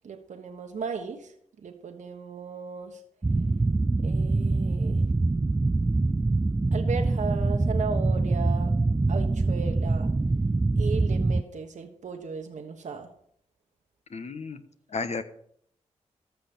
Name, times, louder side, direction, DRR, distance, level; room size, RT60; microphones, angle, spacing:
voice 1, 0.0-1.3 1.6-3.0 4.0-5.0 6.7-8.7 9.1-10.1 10.8-13.1, right 5 dB, 70° right, 4 dB, 1.3 m, -36 dB
sound 1, 3.2-11.4, right 3 dB, 20° right, 0.4 m, -24 dB
voice 2, 14.1-14.6 14.9-15.2, left 4 dB, 60° left, 9 dB, 1.4 m, -32 dB
14.5 x 5.9 x 8.8 m, 0.69 s
cardioid pair, 60°, 13 cm